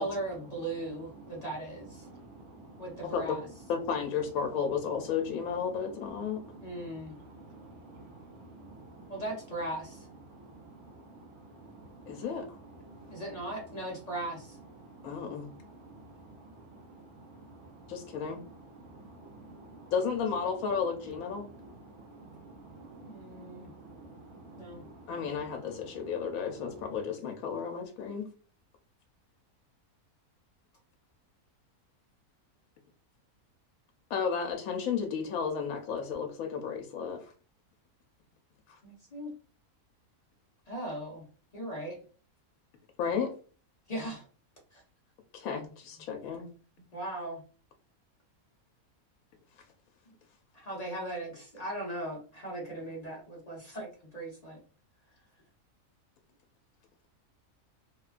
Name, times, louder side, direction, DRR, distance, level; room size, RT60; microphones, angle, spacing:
voice 1, 0.0-2.0 2.8-3.4 6.6-7.1 9.1-10.1 13.1-14.6 23.0-23.7 24.6-24.8 38.8-39.3 40.7-41.2 41.5-42.0 43.9-44.3 44.7-44.8 46.9-47.4 50.5-53.9 54.1-54.6, right 1 dB, 40° left, -2 dB, 0.5 m, -38 dB
voice 2, 2.0-3.0 6.5-9.2 10.3-12.2 12.9-13.2 14.8-15.2 15.4-17.9 18.8-19.9 21.8-25.1, right 2 dB, 80° right, 2 dB, 1.1 m, -51 dB
voice 3, 3.7-6.4 12.1-12.5 15.0-15.5 17.9-18.4 19.9-21.5 25.1-28.3 34.1-37.3 38.7-38.8 43.0-43.3 45.3-46.5, left 6 dB, 75° left, 4 dB, 0.9 m, -33 dB
2.8 x 2.2 x 2.4 m, 0.38 s
omnidirectional pair, 1.6 m